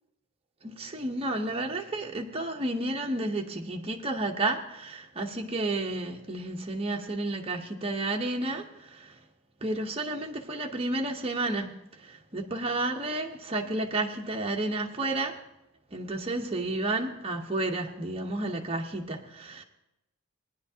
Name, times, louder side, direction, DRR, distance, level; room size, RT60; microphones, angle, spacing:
voice 1, 0.6-8.6 9.6-11.7 12.3-15.4 15.9-19.6, right 2 dB, 25° right, 1 dB, 0.9 m, -31 dB
19.5 x 9.9 x 2.8 m, 0.88 s
head